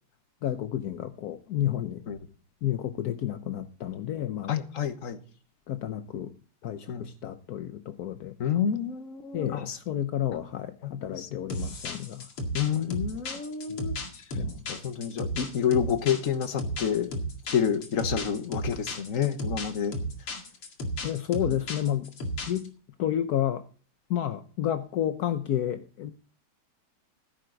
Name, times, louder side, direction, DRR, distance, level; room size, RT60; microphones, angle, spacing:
voice 1, 0.4-2.0 2.6-4.5 5.7-6.3 6.6-8.3 9.3-12.3 12.7-12.9 13.7-13.9 14.4-14.6 21.0-22.1 22.5-22.7 23.0-23.6 24.1-26.1, left 11 dB, 65° left, 9 dB, 1.0 m, -31 dB
voice 2, 4.5-5.2 6.9-7.0 8.4-9.8 10.8-11.3 12.5-13.9 14.7-17.2 17.5-19.9, left 8 dB, 45° left, 9 dB, 1.3 m, -29 dB
sound 1, 11.5-22.7, equal, 85° left, 3.0 m, -34 dB
16.0 x 9.2 x 3.9 m, 0.41 s
omnidirectional pair, 2.3 m